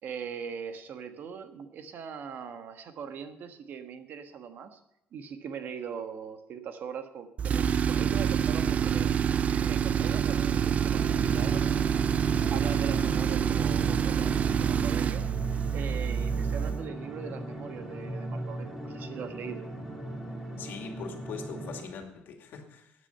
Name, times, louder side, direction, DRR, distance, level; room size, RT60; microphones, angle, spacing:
voice 1, 0.0-4.8 5.1-9.1 9.5-11.9 12.5-15.2 15.7-19.6, right 7 dB, 60° right, 8 dB, 1.3 m, -40 dB
Tools, 7.4-16.9, right 8 dB, 40° right, 0.4 m, -27 dB
sound 1, 10.9-21.8, right 1 dB, ahead, 3.1 m, -38 dB
voice 2, 20.6-22.9, left 6 dB, 65° left, 4 dB, 2.4 m, -41 dB
13.5 x 9.8 x 5.5 m, 0.86 s
cardioid pair, 145°, 4 cm